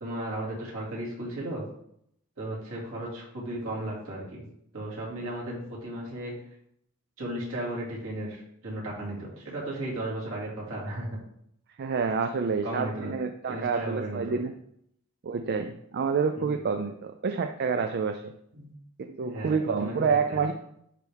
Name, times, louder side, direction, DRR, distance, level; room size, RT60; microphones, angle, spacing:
voice 1, 0.0-1.6 2.4-4.4 4.7-6.4 7.2-11.2 12.6-13.2 13.5-14.4 16.4-16.5 18.5-18.7 19.2-20.5, right 1 dB, 70° right, -4 dB, 2.4 m, -35 dB
voice 2, 11.8-14.5 15.2-18.3 19.0-20.5, right 5 dB, 50° right, 7 dB, 0.4 m, -28 dB
10.5 x 3.5 x 3.4 m, 0.72 s
head